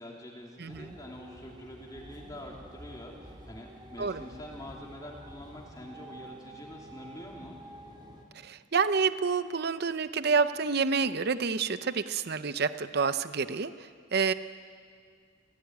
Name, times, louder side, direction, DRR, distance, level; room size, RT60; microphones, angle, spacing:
voice 1, 0.0-7.6, left 1 dB, 20° left, -1 dB, 3.0 m, -45 dB
voice 2, 0.6-0.9 4.0-4.2 8.4-13.7 14.1-14.3, right 5 dB, 55° right, 12 dB, 0.7 m, -28 dB
sound 1, 0.7-8.2, right 1 dB, 25° right, 3.3 m, -49 dB
28.5 x 16.5 x 9.4 m, 2.1 s
head